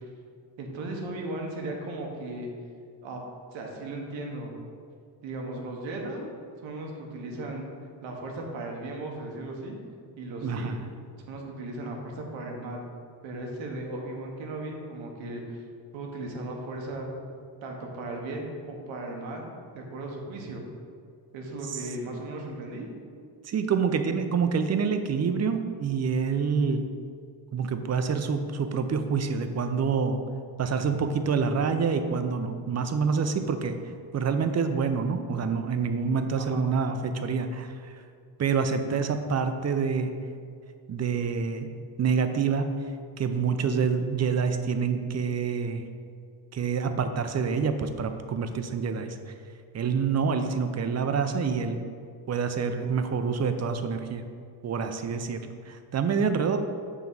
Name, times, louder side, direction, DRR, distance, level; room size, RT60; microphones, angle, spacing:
voice 1, 0.6-2.5 3.0-3.2 3.5-4.5 5.2-6.3 6.6-7.6 8.0-9.8 10.2-10.7 11.3-12.8 13.2-15.6 15.9-17.1 17.6-20.6 21.3-22.9 36.4-36.6 51.2-51.5, right 2 dB, 90° right, 1 dB, 1.1 m, -36 dB
voice 2, 10.4-10.8 21.7-21.8 23.4-26.9 27.5-30.2 30.6-33.8 34.1-38.0 38.4-40.1 40.9-41.7 42.0-42.9 43.2-45.9 46.5-49.3 49.7-51.8 52.3-54.2 54.6-56.6, right 5 dB, 35° right, 8 dB, 0.5 m, -27 dB
5.9 x 3.1 x 5.4 m, 2.2 s
cardioid pair, 75°, 45 cm